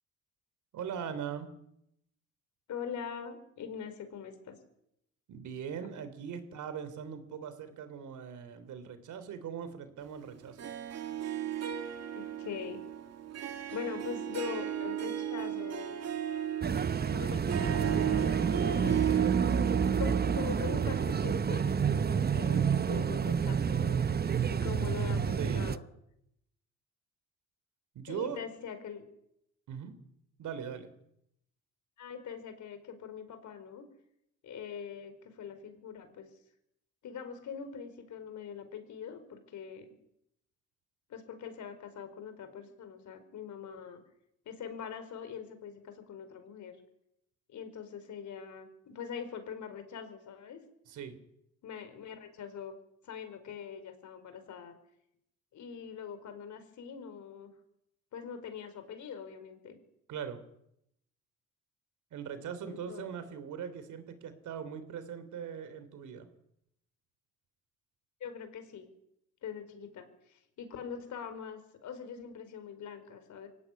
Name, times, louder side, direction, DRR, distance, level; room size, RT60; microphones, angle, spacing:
voice 1, 0.7-1.5 5.3-10.6 18.8-19.2 25.4-25.7 27.9-28.4 29.7-30.0 30.4-30.9 50.9-51.2 60.1-60.4 62.1-66.3, right 7 dB, 75° right, 12 dB, 3.6 m, -40 dB
voice 2, 2.7-4.6 12.1-12.8 13.7-16.0 17.1-19.1 20.0-24.0 24.5-25.8 28.1-29.1 32.0-33.9 34.4-36.3 37.0-39.9 41.1-44.0 44.4-46.8 47.5-50.6 51.6-52.7 53.0-54.8 55.5-57.5 58.1-59.8 62.6-63.1 68.2-68.9 69.4-73.5, left 7 dB, 70° left, 9 dB, 4.9 m, -43 dB
Harp, 10.6-21.7, right 10 dB, 55° right, 2.4 m, -35 dB
sound 1, 16.6-25.8, right 6 dB, 30° right, 0.9 m, -29 dB
23.5 x 17.0 x 9.8 m, 0.78 s
cardioid pair, 90°, 30 cm